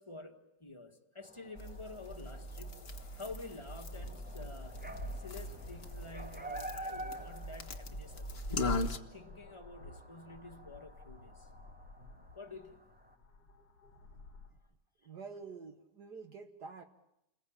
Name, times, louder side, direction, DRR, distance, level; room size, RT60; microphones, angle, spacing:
voice 1, 0.0-2.8 3.2-4.8 5.2-8.8 9.1-11.5 12.4-12.8 15.0-15.1, left 3 dB, 15° left, 1.7 m, -49 dB
sound 1, 1.2-13.1, right 1 dB, 5° right, 1.0 m, -50 dB
sound 2, 1.6-9.0, left 2 dB, 35° left, 1.6 m, -40 dB
sound 3, 3.9-14.5, left 2 dB, 85° left, 4.1 m, -56 dB
voice 2, 15.0-16.8, right 5 dB, 65° right, 1.8 m, -48 dB
29.5 x 21.5 x 8.8 m
omnidirectional pair, 1.9 m